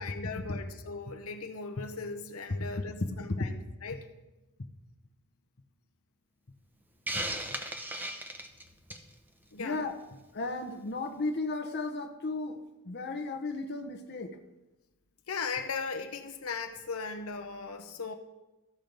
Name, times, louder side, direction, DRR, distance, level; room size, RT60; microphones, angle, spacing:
voice 1, 0.0-4.1 9.5-9.8 15.3-18.1, left 4 dB, 80° left, 0.8 m, -38 dB
Hiss, 7.1-9.1, right 1 dB, 10° right, 0.7 m, -36 dB
voice 2, 9.6-10.0 10.3-14.4, left 3 dB, 55° left, 0.9 m, -34 dB
14.5 x 6.3 x 5.2 m
head